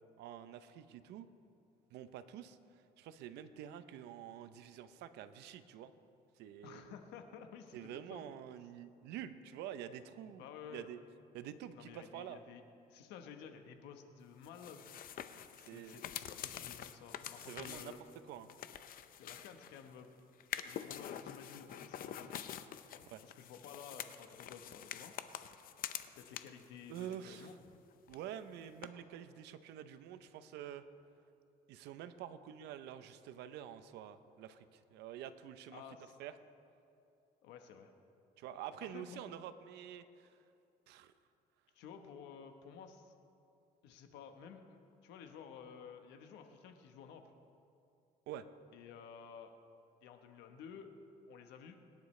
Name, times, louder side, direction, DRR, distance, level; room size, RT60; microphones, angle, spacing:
voice 1, 0.2-1.3 1.9-2.6 3.0-5.9 6.4-6.9 7.7-10.4 10.7-11.0 11.3-12.4 15.6-16.0 17.5-17.9 18.3-18.5 23.1-23.2 26.9-27.5 28.1-30.8 31.7-35.8 36.2-36.3 38.4-40.3 40.9-41.1 48.3-48.4, right 10 dB, 85° right, 11 dB, 0.7 m, -47 dB
voice 2, 6.6-8.2 10.4-10.9 11.7-12.6 12.9-14.9 15.6-18.0 19.2-20.1 20.6-22.6 22.9-25.1 26.2-27.5 35.7-36.2 37.4-37.9 38.9-39.2 41.7-43.1 43.8-47.2 48.7-49.6 50.0-50.9 51.3-51.8, left 7 dB, 90° left, 6 dB, 1.1 m, -53 dB
Paper Fold, 14.4-19.9 20.4-26.7 26.9-27.8 28.1-28.2 28.8-28.9, left 10 dB, 60° left, 0.6 m, -47 dB
22.0 x 10.5 x 3.2 m, 2.6 s
cardioid pair, 110°, 17 cm